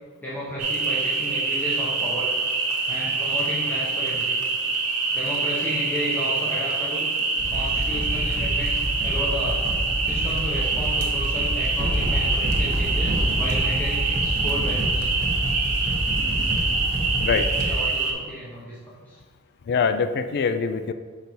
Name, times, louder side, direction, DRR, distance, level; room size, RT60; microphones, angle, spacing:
voice 1, 0.2-2.3 2.9-4.4 5.1-7.1 7.5-9.6 10.0-15.1 17.6-19.2, equal, 10° left, -9 dB, 1.0 m, -33 dB
sound 1, 0.6-18.1, right 3 dB, 75° right, 1.0 m, -25 dB
sound 2, 7.4-17.8, equal, 35° right, 0.9 m, -27 dB
voice 2, 17.2-17.5 19.7-20.9, left 5 dB, 50° left, 10 dB, 0.3 m, -23 dB
5.3 x 4.0 x 4.5 m, 1.4 s
head